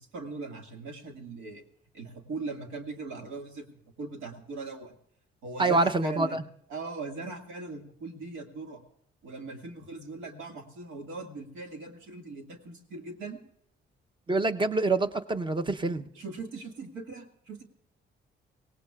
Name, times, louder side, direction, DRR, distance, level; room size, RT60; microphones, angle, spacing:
voice 1, 0.0-1.7 1.9-3.7 4.0-4.9 5.4-6.4 6.7-8.8 9.2-13.4 16.1-17.6, right 3 dB, 85° right, 3 dB, 2.1 m, -40 dB
voice 2, 5.6-6.4 14.3-16.1, right 3 dB, 25° right, 9 dB, 0.8 m, -26 dB
24.5 x 17.5 x 2.4 m, 0.68 s
cardioid pair, 90°, 20 cm